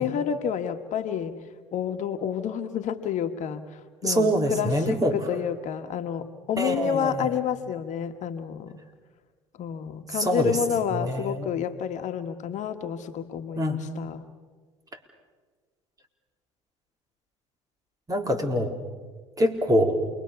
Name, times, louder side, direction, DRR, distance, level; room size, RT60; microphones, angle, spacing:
voice 1, 0.0-1.4 1.7-8.8 9.6-14.3, left 8 dB, 60° left, 7 dB, 1.6 m, -29 dB
voice 2, 4.0-5.1 6.6-7.3 10.1-10.6 10.9-11.5 13.5-13.8 18.1-18.8 19.4-20.0, equal, 25° right, 3 dB, 4.3 m, -25 dB
28.5 x 21.5 x 7.1 m, 1.4 s
hypercardioid pair, 65°, 14 cm